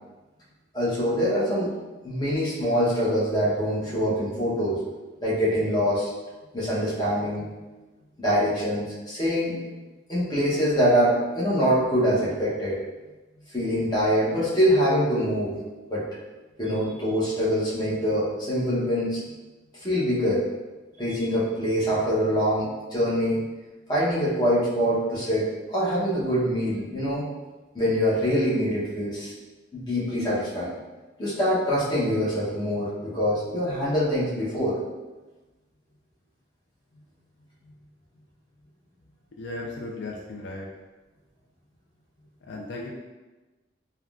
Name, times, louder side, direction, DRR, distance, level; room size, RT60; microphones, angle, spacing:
voice 1, 0.7-1.7 2.0-4.8 5.2-6.1 6.5-7.5 8.2-9.6 10.1-12.8 13.5-15.5 15.9-16.0 16.6-19.2 19.8-20.4 21.0-23.4 23.9-27.3 27.7-29.3 29.7-30.7 31.2-34.8, equal, 20° left, -8 dB, 0.7 m, -24 dB
voice 2, 39.4-40.7 42.5-42.9, left 2 dB, 70° left, -2 dB, 0.4 m, -36 dB
3.5 x 2.2 x 2.3 m, 1.2 s
head